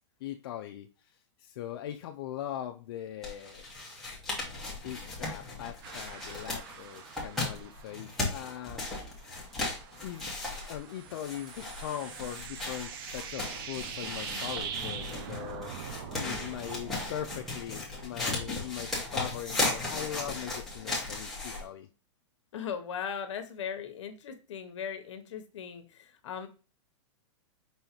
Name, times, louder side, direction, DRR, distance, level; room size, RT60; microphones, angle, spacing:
voice 1, 0.2-3.7 4.8-8.8 10.0-21.9, left 11 dB, 50° left, 4 dB, 0.4 m, -40 dB
sound 1, 3.2-21.6, left 2 dB, ahead, 1.3 m, -36 dB
sound 2, 5.8-8.7 9.1-17.6, right 8 dB, 45° right, 0.5 m, -43 dB
voice 2, 22.5-26.5, left 7 dB, 70° left, 8 dB, 0.9 m, -38 dB
5.5 x 3.2 x 2.9 m, 0.34 s
supercardioid pair, 160°, 16 cm